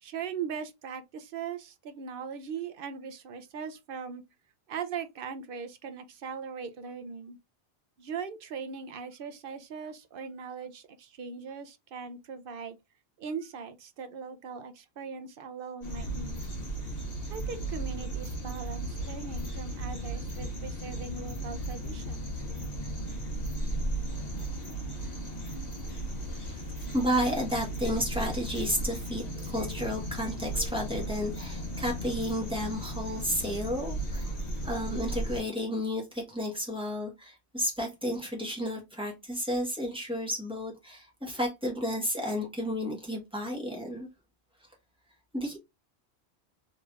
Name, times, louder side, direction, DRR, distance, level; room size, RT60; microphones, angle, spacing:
voice 1, 0.0-4.2 4.7-7.4 8.0-12.8 13.2-16.5 17.3-22.3, right 6 dB, 60° right, 0.7 m, -40 dB
sound 1, 15.8-35.4, right 1 dB, 40° left, 1.4 m, -35 dB
voice 2, 26.9-34.3 34.6-44.1 45.3-45.6, equal, 5° right, 1.3 m, -32 dB
3.3 x 3.1 x 2.4 m
omnidirectional pair, 1.1 m